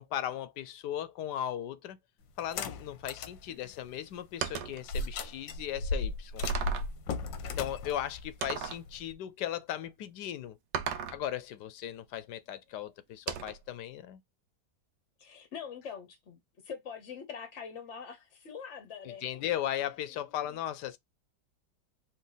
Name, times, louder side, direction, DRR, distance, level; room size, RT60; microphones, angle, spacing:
voice 1, 0.0-2.0 2.4-6.4 7.6-10.6 11.1-14.2 19.0-21.0, left 11 dB, 75° left, 1.2 m, -37 dB
sound 1, 2.4-3.4 3.8-3.9 4.9-9.1, left 3 dB, 90° left, 1.5 m, -35 dB
sound 2, 4.4-4.8 5.6-5.7 6.4-7.0 8.4-8.9 10.7-11.2 13.3-13.7, right 8 dB, 75° right, 1.3 m, -36 dB
voice 2, 15.2-16.4 16.6-19.4, left 6 dB, 50° left, 1.0 m, -44 dB
4.4 x 3.0 x 3.9 m
omnidirectional pair, 2.0 m